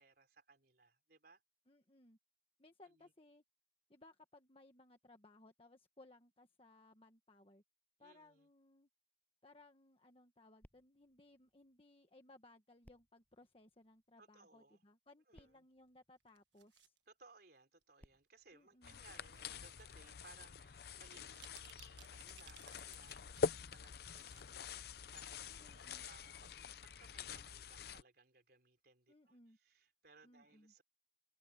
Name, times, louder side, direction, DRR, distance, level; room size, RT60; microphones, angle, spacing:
voice 1, 0.0-1.4 2.8-3.1 8.0-8.5 14.2-14.8 15.3-15.7 17.1-24.8 25.1-26.7 27.0-30.8, right 3 dB, 55° right, 3.8 m, -65 dB
voice 2, 1.7-2.2 2.6-3.4 3.9-7.6 8.0-8.9 9.4-16.9 18.5-19.0 25.6-26.0 29.1-29.6 30.2-30.7, left 2 dB, 30° left, 1.4 m, -64 dB
sound 1, 10.6-12.2 12.8-14.4 15.0-15.1 15.3-16.9 17.7-19.6 20.3-20.4, equal, 10° left, 6.9 m, -70 dB
sound 2, 16.2-17.0 17.8-18.0 19.3-20.0 20.4-20.5 21.0-23.4 23.7-24.5 24.8-24.9, right 11 dB, 75° right, 1.4 m, -62 dB
sound 3, 18.8-28.0, left 5 dB, 60° left, 0.6 m, -45 dB
head